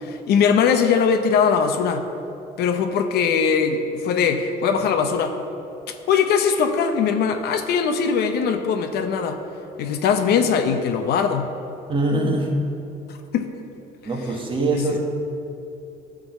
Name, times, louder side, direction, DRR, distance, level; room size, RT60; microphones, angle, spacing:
voice 1, 0.0-2.0 2.6-5.3 5.9-9.4 9.8-11.5 13.1-13.5 14.3-14.4 14.7-15.0, left 6 dB, 70° left, 7 dB, 0.7 m, -21 dB
voice 2, 11.9-12.5 14.0-15.0, right 2 dB, 30° right, 0 dB, 1.6 m, -23 dB
11.5 x 3.8 x 7.3 m, 2.7 s
cardioid pair, 110°, 17 cm